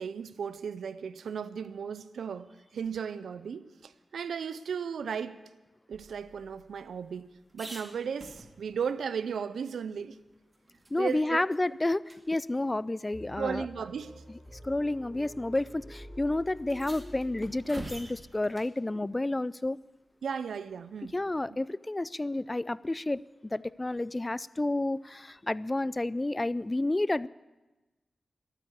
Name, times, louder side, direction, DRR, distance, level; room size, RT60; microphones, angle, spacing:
voice 1, 0.0-5.4 5.9-10.2 11.0-11.4 13.3-14.1 20.2-21.2, right 6 dB, 90° right, 0.5 m, -35 dB
sound 1, 5.9-8.9 9.3-9.4 9.7-11.2 11.5-11.6 12.0-12.2 13.2-13.3 14.2-14.5 15.5-15.6 15.9-16.0 16.6-18.8 21.0-21.5, right 1 dB, 30° right, 2.1 m, -48 dB
voice 2, 10.9-13.7 14.6-19.8 21.1-27.3, left 2 dB, 25° left, 0.4 m, -30 dB
sound 2, 13.1-18.1, equal, 5° left, 5.3 m, -48 dB
12.5 x 9.1 x 8.5 m
cardioid pair, 55°, 0 cm